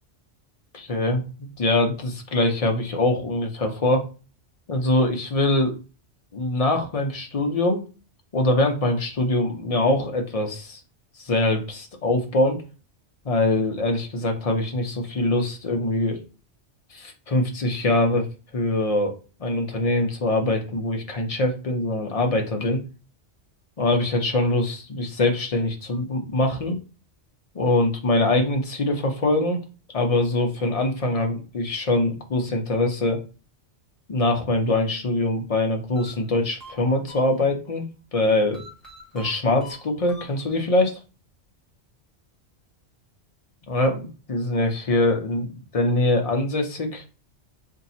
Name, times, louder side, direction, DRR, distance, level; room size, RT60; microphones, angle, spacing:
voice 1, 0.7-4.1 4.7-5.8 6.3-7.8 8.3-10.8 11.2-12.6 13.2-16.2 16.9-18.3 18.5-19.1 19.4-22.8 23.8-26.8 27.5-29.6 29.9-33.2 34.1-37.9 38.1-38.7 39.1-41.0 43.7-45.5 45.7-47.0, left 2 dB, 40° left, 4 dB, 0.6 m, -23 dB
sound 1, 36.0-37.8 38.5-40.8, equal, ahead, 1.2 m, -46 dB
2.8 x 2.7 x 4.1 m, 0.34 s
omnidirectional pair, 1.2 m